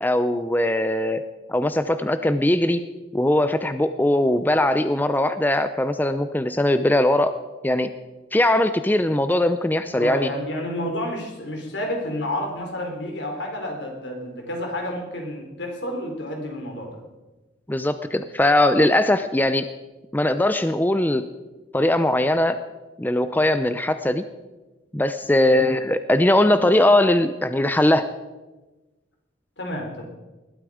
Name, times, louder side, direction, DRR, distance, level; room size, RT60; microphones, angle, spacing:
voice 1, 0.0-1.2 1.5-2.8 3.1-7.4 7.6-7.9 8.3-10.3 17.7-19.6 20.1-21.2 21.7-22.6 23.0-24.2 24.9-28.1, left 1 dB, 10° left, 10 dB, 0.5 m, -20 dB
voice 2, 9.9-17.0 25.4-25.6 29.6-30.0, left 1 dB, 70° left, 2 dB, 3.9 m, -30 dB
20.0 x 12.5 x 5.0 m, 1.1 s
head